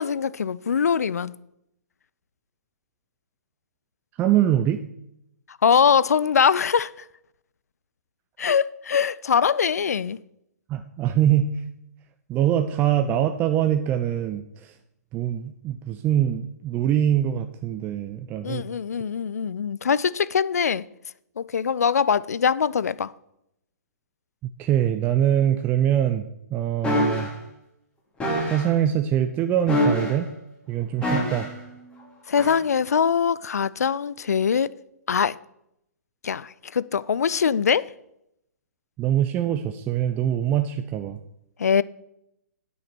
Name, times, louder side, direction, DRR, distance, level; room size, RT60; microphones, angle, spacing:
voice 1, 0.0-1.4 5.6-6.9 8.4-10.2 18.4-20.8 21.4-23.1 32.3-34.7 35.1-35.4 36.2-37.9 41.6-41.8, left 7 dB, 65° left, 0.4 m, -22 dB
voice 2, 4.2-4.8 10.7-11.5 12.3-14.7 15.1-18.6 24.6-26.2 26.5-27.3 28.4-30.3 30.7-31.5 39.0-41.2, right 11 dB, 20° right, 0.5 m, -23 dB
sound 1, 26.8-27.3 28.2-28.7 29.7-30.3 31.0-31.6 32.4-32.5, left 1 dB, 10° left, 2.8 m, -24 dB
9.5 x 8.5 x 6.1 m
figure-of-eight pair, 125°, 9 cm